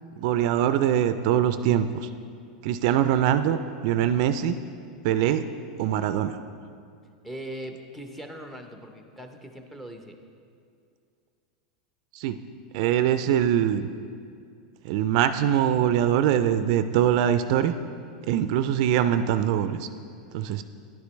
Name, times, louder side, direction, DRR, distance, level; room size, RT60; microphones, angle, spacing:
voice 1, 0.2-2.1 2.6-4.6 5.0-5.4 5.8-6.4 12.1-12.4 12.7-13.9 14.8-17.7 18.3-19.9 20.3-20.6, right 10 dB, 60° right, 11 dB, 0.3 m, -23 dB
voice 2, 7.2-10.2, right 1 dB, 5° left, 4 dB, 0.7 m, -40 dB
10.5 x 8.3 x 3.1 m, 2.3 s
supercardioid pair, 125°, 4 cm